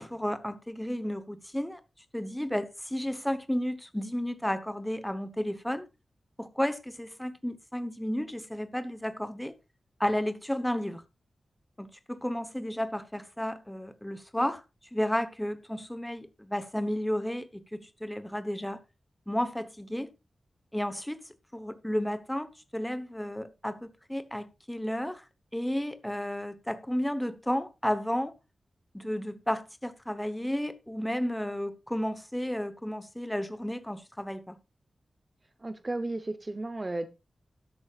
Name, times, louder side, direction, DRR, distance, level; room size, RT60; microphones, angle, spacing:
voice 1, 0.0-1.8 2.1-5.9 6.4-9.5 10.0-11.0 11.8-14.6 14.9-18.8 19.3-20.1 20.7-21.2 21.5-25.2 25.5-28.3 28.9-34.6, equal, 5° left, 1.0 m, -32 dB
voice 2, 35.6-37.1, right 2 dB, 25° right, 0.8 m, -34 dB
13.0 x 11.0 x 2.4 m
wide cardioid pair, 155°, 0 cm